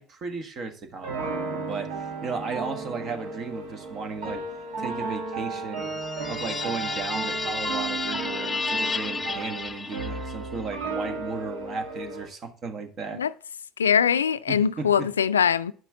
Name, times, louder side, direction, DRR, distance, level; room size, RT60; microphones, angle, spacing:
voice 1, 0.0-4.4 4.8-5.9 6.3-13.2 14.5-15.1, right 4 dB, 45° right, 1.5 m, -35 dB
sound 1, 1.0-12.3, right 3 dB, 70° right, 1.7 m, -34 dB
sound 2, 5.7-10.5, left 4 dB, 25° left, 0.5 m, -32 dB
voice 2, 13.8-15.7, left 7 dB, 90° left, 0.3 m, -22 dB
9.2 x 5.9 x 3.7 m
hypercardioid pair, 70°, 0 cm